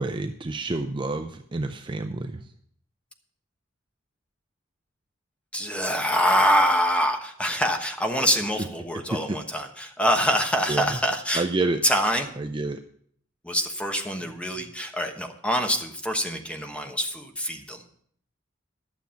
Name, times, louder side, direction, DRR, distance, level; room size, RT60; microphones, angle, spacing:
voice 1, 0.0-2.4 9.1-9.4 10.7-10.9 11.3-11.8 12.4-12.8, right 2 dB, 25° right, 7 dB, 0.5 m, -28 dB
voice 2, 5.5-11.4 11.8-12.3 13.4-17.8, equal, 5° left, 4 dB, 1.1 m, -25 dB
12.0 x 7.1 x 5.7 m, 0.64 s
head